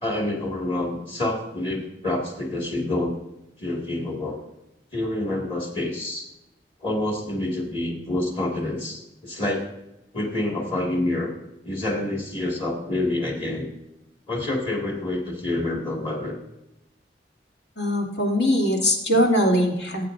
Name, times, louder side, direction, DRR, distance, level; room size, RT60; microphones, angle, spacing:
voice 1, 0.0-3.1 3.6-4.4 4.9-6.3 6.8-9.7 10.1-11.3 11.6-13.7 14.3-16.4, left 1 dB, 30° left, 0 dB, 2.0 m, -27 dB
voice 2, 17.8-20.1, equal, 80° left, 0 dB, 2.6 m, -21 dB
18.5 x 8.4 x 2.6 m, 0.90 s
head